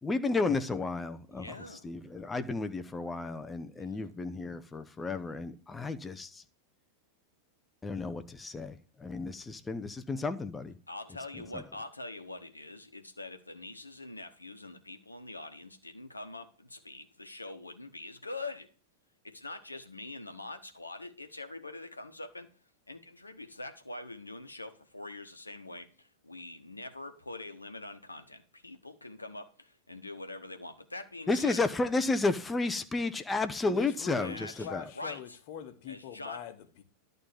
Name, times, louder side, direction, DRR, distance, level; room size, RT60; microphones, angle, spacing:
voice 1, 0.0-1.5 1.8-6.4 7.8-10.7 11.5-11.6 31.3-34.8, left 3 dB, 15° left, 0.8 m, -32 dB
voice 2, 1.3-1.9 3.8-4.1 10.9-18.7 19.2-22.5 22.9-31.6 34.2-35.4 35.9-36.4, left 2 dB, 80° left, 1.1 m, -44 dB
voice 3, 33.7-36.8, left 9 dB, 50° left, 1.3 m, -43 dB
11.5 x 4.0 x 7.2 m
figure-of-eight pair, 90°, 0 cm